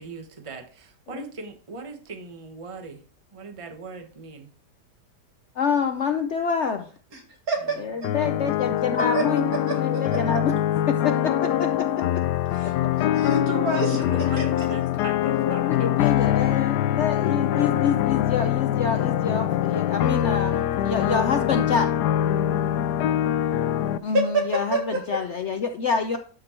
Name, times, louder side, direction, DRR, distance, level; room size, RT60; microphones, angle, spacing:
voice 1, 0.0-3.0 3.3-4.5 14.1-15.9 22.5-24.0, right 4 dB, 20° right, 4 dB, 1.1 m, -40 dB
voice 2, 5.6-6.9 7.8-9.4 9.8-10.5 10.9-12.0 12.6-12.9 15.6-21.9 24.0-26.2, left 6 dB, 60° left, 6 dB, 0.8 m, -27 dB
voice 3, 7.5-8.1 9.1-9.3 9.7-10.2 12.5-14.0 14.4-14.5 24.1-25.2, right 2 dB, 60° right, 2 dB, 2.5 m, -28 dB
sound 1, 8.0-24.0, left 11 dB, 75° left, 1.1 m, -24 dB
12.0 x 5.3 x 4.3 m, 0.42 s
omnidirectional pair, 1.8 m